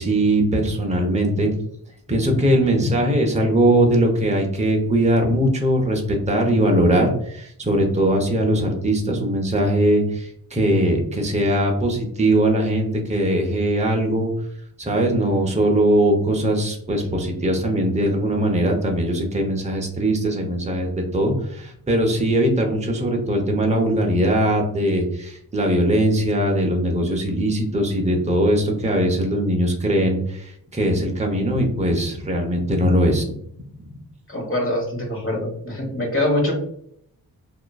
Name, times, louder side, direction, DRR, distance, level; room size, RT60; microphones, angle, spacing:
voice 1, 0.0-1.5 2.1-14.3 14.8-33.2, right 1 dB, 15° right, 1 dB, 0.7 m, -20 dB
voice 2, 34.3-36.5, left 1 dB, 30° left, 0 dB, 1.2 m, -24 dB
2.9 x 2.5 x 2.2 m, 0.70 s
cardioid pair, 60°, 40 cm